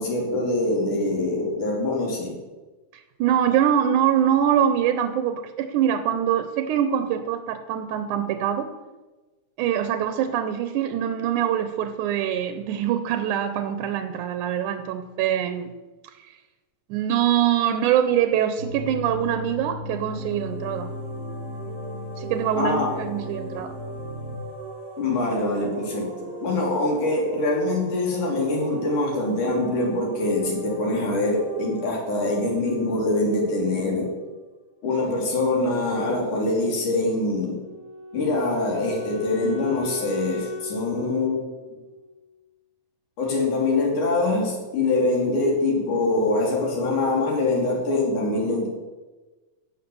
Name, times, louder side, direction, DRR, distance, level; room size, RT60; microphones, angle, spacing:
voice 1, 0.0-2.4 22.6-22.9 25.0-34.1 34.8-37.6 38.1-41.5 43.2-48.7, left 2 dB, 90° left, -1 dB, 4.4 m, -24 dB
voice 2, 2.9-8.7 9.6-15.7 16.0-16.1 16.9-20.9 22.2-23.7, right 10 dB, 90° right, 9 dB, 2.3 m, -24 dB
sound 1, 18.6-24.4, left 1 dB, 40° right, 1.0 m, -36 dB
sound 2, 19.7-34.4, right 4 dB, 65° right, 6.0 m, -40 dB
Wind instrument woodwind instrument, 37.3-42.4, left 3 dB, 55° left, 3.1 m, -38 dB
17.0 x 6.6 x 7.0 m, 1.2 s
omnidirectional pair, 3.4 m